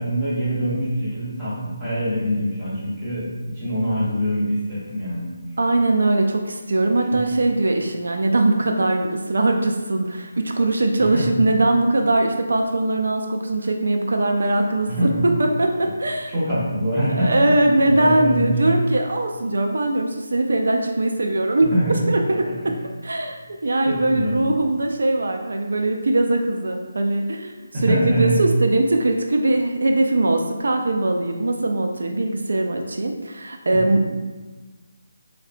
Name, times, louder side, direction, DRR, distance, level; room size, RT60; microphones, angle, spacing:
voice 1, 0.0-5.3 7.1-7.2 11.0-11.4 13.6-13.7 14.9-15.2 16.3-17.6 17.8-18.8 21.6-22.0 22.5-22.7 23.9-24.5 27.7-28.4 33.7-33.8, equal, 10° right, -12 dB, 0.8 m, -24 dB
voice 2, 5.6-15.1 15.4-16.3 17.1-21.7 22.1-22.7 23.0-23.4 23.6-27.5 27.8-34.2, right 2 dB, 75° right, 3 dB, 0.3 m, -21 dB
3.2 x 2.8 x 2.5 m, 1.3 s
hypercardioid pair, 175°, 0 cm